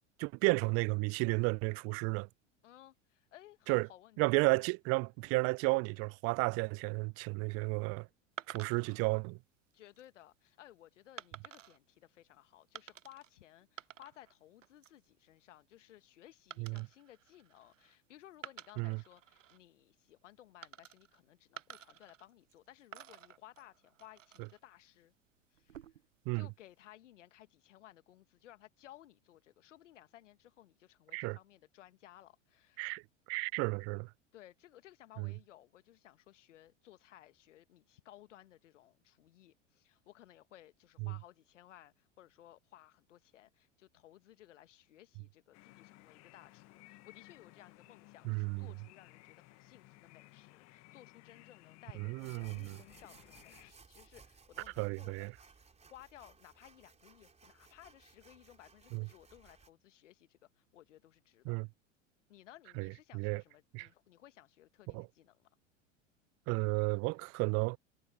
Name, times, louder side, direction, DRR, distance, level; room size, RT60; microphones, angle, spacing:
voice 1, 0.2-2.3 3.7-3.9 4.2-8.1 8.5-9.4 16.6-16.9 18.8-19.0 26.3-26.5 31.1-31.4 32.8-33.0 33.3-34.1 35.2-35.3 41.0-41.1 48.2-48.7 52.0-52.8 54.8-55.3 58.9-59.1 61.5-61.7 62.8-63.4 63.7-63.9 64.9-65.1 66.5-67.8, right 29 dB, 40° right, 0.5 m, -33 dB
voice 2, 2.6-4.4 9.7-25.1 25.5-25.9 26.3-32.9 34.3-61.6 62.3-65.5, left 13 dB, 70° left, 1.5 m, -59 dB
sound 1, 8.4-9.0 9.7-10.0 11.2-11.8 12.7-13.3 13.6-14.3 14.6-15.0 16.5-18.0 18.3-19.6 20.6-21.2 21.6-22.6 22.9-24.6 25.5-26.2, right 10 dB, 85° right, 0.6 m, -51 dB
sound 2, 45.5-53.7, left 21 dB, 45° left, 1.4 m, -59 dB
sound 3, 52.2-59.7, right 5 dB, 15° right, 4.2 m, -61 dB
hypercardioid pair, 85°, 37 cm